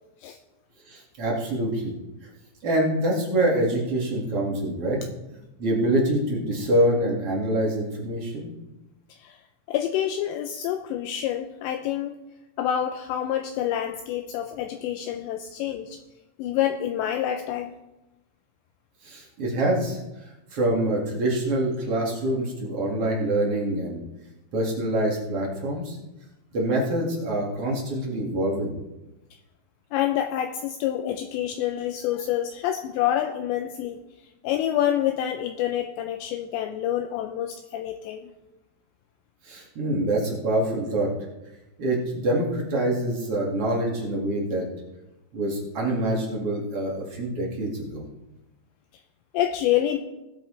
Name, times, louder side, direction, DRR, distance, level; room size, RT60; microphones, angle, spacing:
voice 1, 0.9-1.9 2.6-5.0 5.6-8.5 19.0-20.0 20.5-24.0 24.5-26.0 26.5-28.8 39.4-41.1 41.8-44.6 45.3-48.0, right 1 dB, 45° right, -3 dB, 2.0 m, -25 dB
voice 2, 9.7-12.1 12.6-16.0 16.4-17.7 29.9-34.0 34.4-38.3 49.3-50.0, left 11 dB, 80° left, 6 dB, 2.7 m, -27 dB
19.5 x 8.3 x 3.2 m, 1.0 s
omnidirectional pair, 5.4 m